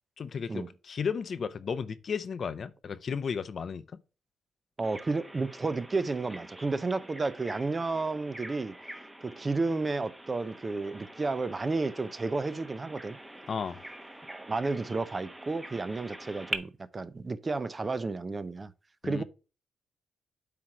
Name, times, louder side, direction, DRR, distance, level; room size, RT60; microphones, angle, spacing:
voice 1, 0.2-3.8 13.5-13.8 19.0-19.2, left 6 dB, 55° left, 0.7 m, -34 dB
Bird vocalization bird call bird song, 4.8-16.6, right 1 dB, 10° right, 1.0 m, -44 dB
voice 2, 4.8-8.7 9.2-13.2 14.3-18.7 19.0-19.2, right 3 dB, 30° right, 0.6 m, -32 dB
8.4 x 3.2 x 5.8 m
cardioid pair, 75°, 0 cm